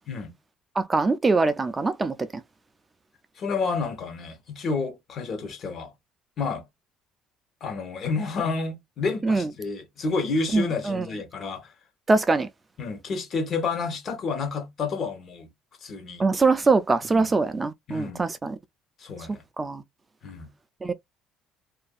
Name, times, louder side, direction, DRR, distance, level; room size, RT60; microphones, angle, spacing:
voice 1, 0.8-2.1 9.2-9.5 10.5-11.0 12.1-12.5 16.2-18.6 19.6-19.8 20.8-20.9, right 3 dB, 20° right, 0.3 m, -23 dB
voice 2, 3.4-5.9 6.4-6.6 7.6-11.7 12.8-15.5 15.8-16.2 17.1-17.3 17.9-18.3 19.0-19.4 20.2-20.5, left 4 dB, 45° left, 0.9 m, -30 dB
2.6 x 2.4 x 2.3 m
cardioid pair, 110°, 0 cm